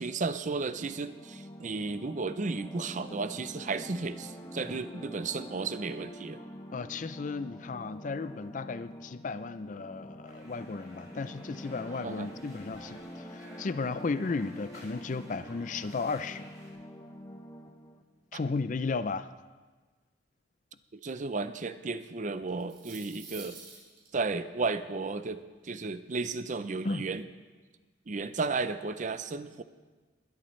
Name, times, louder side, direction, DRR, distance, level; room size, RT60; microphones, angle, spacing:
voice 1, 0.0-6.4 12.0-12.3 18.3-18.4 20.9-23.6 24.1-27.2 28.1-29.6, right 4 dB, 40° right, 12 dB, 0.5 m, -34 dB
sound 1, 0.7-18.0, equal, 15° left, 0.9 m, -46 dB
voice 2, 6.7-16.5 18.3-19.3 26.8-27.1, left 4 dB, 40° left, 13 dB, 0.4 m, -34 dB
sound 2, 10.2-16.7, right 1 dB, 20° right, 5.0 m, -55 dB
sound 3, 22.5-24.1, right 5 dB, 55° right, 5.4 m, -47 dB
21.0 x 13.0 x 3.2 m, 1.4 s
head